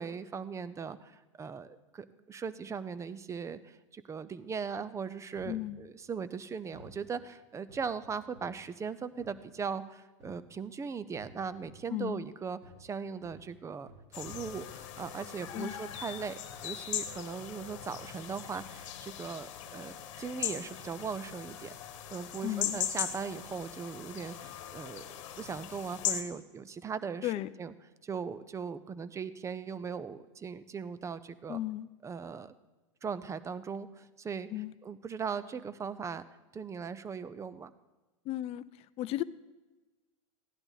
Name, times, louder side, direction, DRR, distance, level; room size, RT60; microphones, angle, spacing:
voice 1, 0.0-21.7 22.1-27.3 27.6-27.7 28.0-31.6 32.0-32.5 33.0-34.5 34.8-36.2 36.5-37.7, right 6 dB, 15° right, 15 dB, 0.6 m, -39 dB
sound 1, 5.3-5.7 6.7-7.0 7.7-8.6 9.2-9.4 10.2-10.5 11.1-11.9 12.6-12.9 13.2-16.8 17.1-17.3 17.6-18.0 18.8-19.0 19.8-20.1 20.7-20.8, equal, 65° right, 4.4 m, -56 dB
voice 2, 5.5-5.8 11.9-12.2 15.5-15.8 22.4-22.8 27.2-27.5 31.5-31.9 34.5-34.7 38.3-39.2, left 14 dB, 35° left, 17 dB, 0.5 m, -35 dB
sound 2, 14.1-26.2, left 10 dB, 60° left, 1.2 m, -39 dB
16.0 x 10.5 x 4.0 m, 1.2 s
hypercardioid pair, 100°, 17 cm